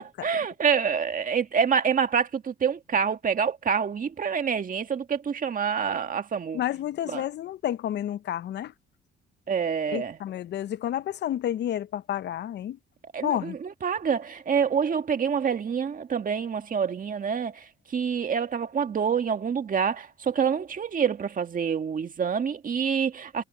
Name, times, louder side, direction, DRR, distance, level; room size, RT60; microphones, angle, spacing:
voice 1, 0.0-6.6 7.1-7.2 9.5-10.2 13.1-23.4, right 7 dB, 45° right, 1.8 m, -27 dB
voice 2, 6.5-8.7 9.9-12.8 13.2-13.6, left 11 dB, 60° left, 0.6 m, -30 dB
cardioid pair, 90°, 20 cm